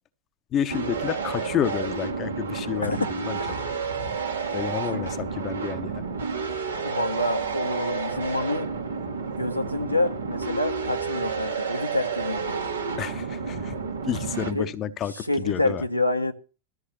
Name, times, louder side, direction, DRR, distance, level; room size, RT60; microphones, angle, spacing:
voice 1, 0.5-3.4 4.5-6.0 13.0-15.8, left 10 dB, 30° left, 0.8 m, -30 dB
sound 1, 0.7-14.5, right 5 dB, 75° right, 1.6 m, -30 dB
voice 2, 6.8-8.7 9.4-12.6 14.5-14.7 15.2-16.3, left 2 dB, 90° left, 1.0 m, -27 dB
13.5 x 6.5 x 6.9 m
figure-of-eight pair, 90°, 0 cm